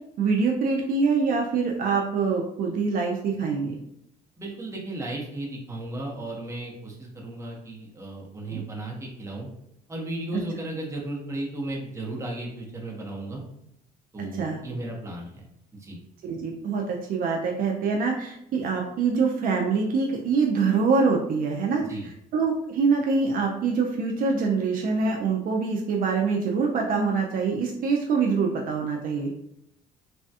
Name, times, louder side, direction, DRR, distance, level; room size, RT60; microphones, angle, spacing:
voice 1, 0.2-3.8 8.5-8.6 14.2-14.6 16.2-21.8 22.3-29.3, right 4 dB, 55° right, 0 dB, 0.5 m, -25 dB
voice 2, 4.4-9.5 9.9-13.4 14.1-15.4 15.8-16.0 21.9-22.1, right 1 dB, 15° right, -2 dB, 0.8 m, -35 dB
3.3 x 2.2 x 2.7 m, 0.75 s
cardioid pair, 110°, 17 cm